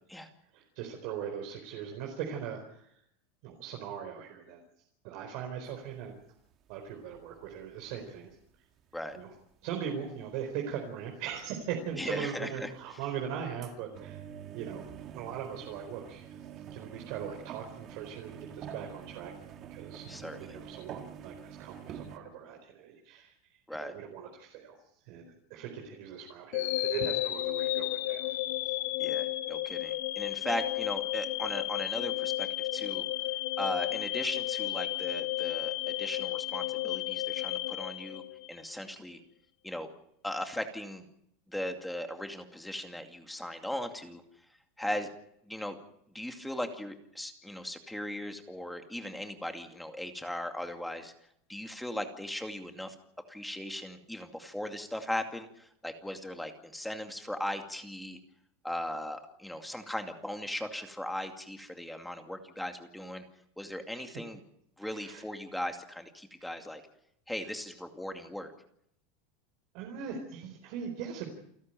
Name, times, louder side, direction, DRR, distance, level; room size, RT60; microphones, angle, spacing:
voice 1, 0.5-3.0 3.4-4.6 5.0-6.2 6.7-8.4 9.1-9.3 9.6-14.2 14.5-14.9 15.1-19.3 19.7-24.8 25.0-28.3 28.6-28.7 63.9-64.1 64.8-65.2 69.7-71.3, right 8 dB, 55° right, 2 dB, 4.4 m, -40 dB
sound 1, 5.6-5.8 6.5-8.3 8.8-9.3 10.2-10.3 11.3-11.4 11.9-12.0 12.4-13.2 13.6-22.2, right 8 dB, 35° right, 2.1 m, -46 dB
voice 2, 11.9-12.7 20.1-20.6 23.7-24.0 29.0-33.0 33.6-38.2 38.5-39.2 39.6-39.9 40.2-41.1 41.5-44.2 44.8-45.1 45.5-45.8 46.1-51.1 51.5-52.9 53.3-58.2 58.6-63.2 63.6-64.4 64.8-66.8 67.3-68.5, left 1 dB, 5° left, 5 dB, 2.4 m, -38 dB
sound 2, 26.5-38.7, left 17 dB, 75° left, 2.1 m, -33 dB
29.0 x 12.0 x 9.1 m, 0.73 s
supercardioid pair, 150°, 0 cm